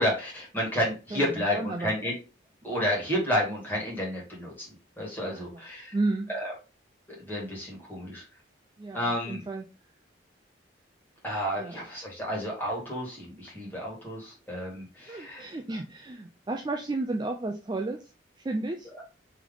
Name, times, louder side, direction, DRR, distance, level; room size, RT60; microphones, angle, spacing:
voice 1, 0.0-2.1 2.6-4.7 5.0-6.0 6.3-6.5 7.1-8.2 8.9-9.4 11.2-15.5, equal, 10° left, -3 dB, 1.6 m, -31 dB
voice 2, 1.1-1.9 5.2-5.6 5.9-6.3 8.8-9.6 11.6-11.8 15.1-18.1 18.4-18.9, right 2 dB, 20° right, 3 dB, 0.3 m, -33 dB
3.5 x 3.1 x 3.7 m, 0.31 s
head